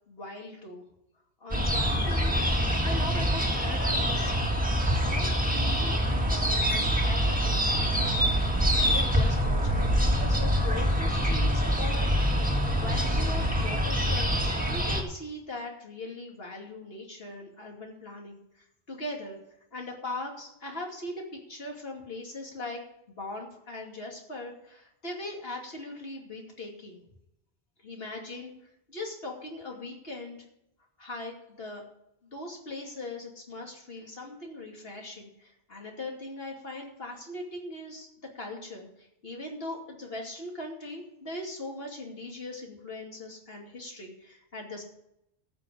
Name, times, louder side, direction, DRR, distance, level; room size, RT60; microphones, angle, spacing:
voice 1, 0.1-0.8 1.4-2.4 2.8-4.3 5.0-8.2 8.8-12.1 12.8-18.4 18.9-19.4 19.7-22.8 23.1-27.0 27.8-28.5 28.9-30.4 31.0-31.8 32.3-38.1 38.3-44.8, left 2 dB, 65° left, 0 dB, 2.8 m, -40 dB
sound 1, 1.5-15.0, equal, 10° right, 1.7 m, -25 dB
14.0 x 6.1 x 7.9 m, 0.81 s
omnidirectional pair, 1.1 m